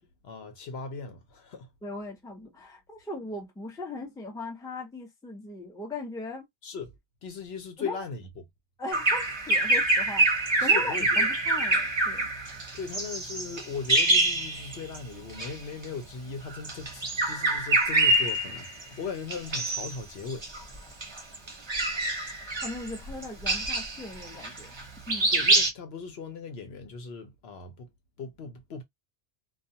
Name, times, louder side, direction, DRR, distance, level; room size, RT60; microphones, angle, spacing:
voice 1, 0.2-1.7 6.6-6.9 7.2-8.5 10.6-11.3 12.7-20.6 25.3-27.9 28.2-28.8, left 5 dB, 65° left, 1.0 m, -38 dB
voice 2, 1.8-6.5 7.8-8.0 8.8-12.3 22.6-24.7 25.1-25.3, left 2 dB, 5° left, 0.6 m, -38 dB
Bird vocalization bird call bird song, 8.9-15.0 15.3-15.5 16.5-18.8 19.3-19.9 20.3-24.8 25.1-25.7, right 2 dB, 30° right, 0.7 m, -25 dB
2.3 x 2.3 x 2.7 m
omnidirectional pair, 1.2 m